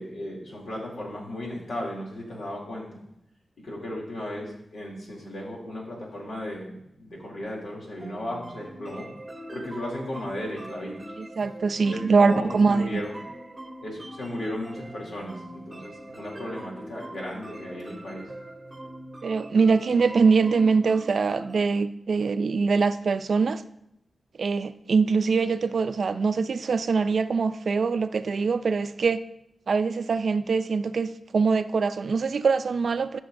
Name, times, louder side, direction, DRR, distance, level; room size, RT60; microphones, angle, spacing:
voice 1, 0.0-3.0 3.6-9.1 9.5-11.1 11.9-13.2 13.8-18.3, left 1 dB, 80° left, -3 dB, 2.8 m, -35 dB
sound 1, 8.0-21.7, right 1 dB, 20° right, 0.9 m, -43 dB
voice 2, 11.2-12.9 19.2-23.6 24.4-29.2 29.7-33.2, right 4 dB, 65° right, 11 dB, 0.4 m, -23 dB
14.0 x 6.2 x 2.6 m, 0.77 s
wide cardioid pair, 90°, 0 cm